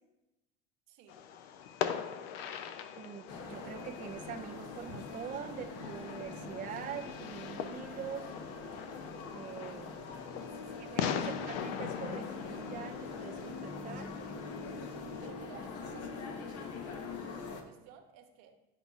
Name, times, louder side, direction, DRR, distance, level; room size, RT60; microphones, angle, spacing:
voice 1, 0.9-1.2 10.1-11.1 15.2-16.6 17.5-18.6, right 7 dB, 70° right, 5 dB, 1.0 m, -56 dB
Fireworks, 1.1-15.3, left 8 dB, 85° left, 0.6 m, -41 dB
voice 2, 2.9-8.3 9.3-10.0 10.8-14.1, right 8 dB, 25° right, 5 dB, 0.5 m, -44 dB
sound 1, 3.3-17.6, left 4 dB, 55° left, 1.0 m, -43 dB
11.0 x 4.1 x 2.4 m, 0.99 s
supercardioid pair, 100°, 30 cm